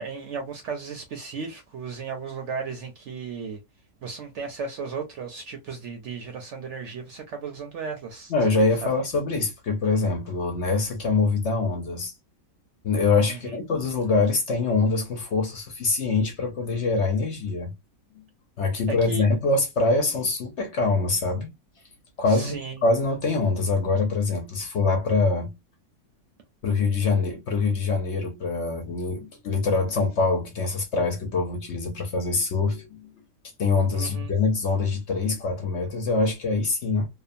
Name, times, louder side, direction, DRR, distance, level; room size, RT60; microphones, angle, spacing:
voice 1, 0.0-3.6 4.0-8.3 8.8-8.9 13.3-13.6 18.9-19.2 22.3-22.8 33.9-34.3, right 5 dB, 65° right, 0.8 m, -35 dB
voice 2, 8.3-12.1 12.8-17.7 18.6-21.5 22.2-25.5 26.6-33.1 33.6-37.1, left 3 dB, 55° left, 0.9 m, -24 dB
2.7 x 2.2 x 2.5 m
omnidirectional pair, 1.6 m